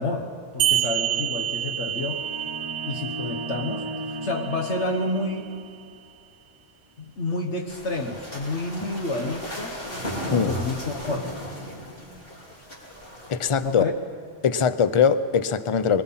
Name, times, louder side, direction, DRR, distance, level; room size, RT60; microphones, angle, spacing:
voice 1, 0.0-2.3 2.8-5.5 7.0-9.9 10.3-11.3 13.6-13.9, left 2 dB, 70° left, 2 dB, 1.6 m, -29 dB
sound 1, 0.6-5.6, right 11 dB, 90° right, 1.0 m, -29 dB
sound 2, 2.0-5.9, right 1 dB, 25° right, 0.7 m, -37 dB
sound 3, 7.7-13.8, equal, 50° left, 4.1 m, -36 dB
voice 2, 13.3-13.8 14.4-16.0, left 6 dB, 35° left, 13 dB, 0.5 m, -21 dB
24.0 x 20.5 x 5.7 m, 2.2 s
omnidirectional pair, 1.2 m